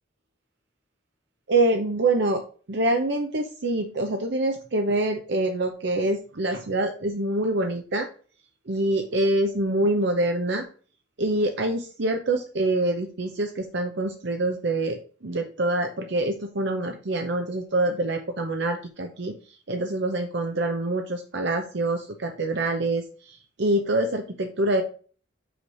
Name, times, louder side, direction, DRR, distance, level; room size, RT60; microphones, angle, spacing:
voice 1, 1.5-2.4 2.7-8.1 8.7-10.7 11.2-24.8, right 2 dB, 60° right, 4 dB, 0.8 m, -25 dB
8.0 x 3.3 x 5.5 m, 0.41 s
head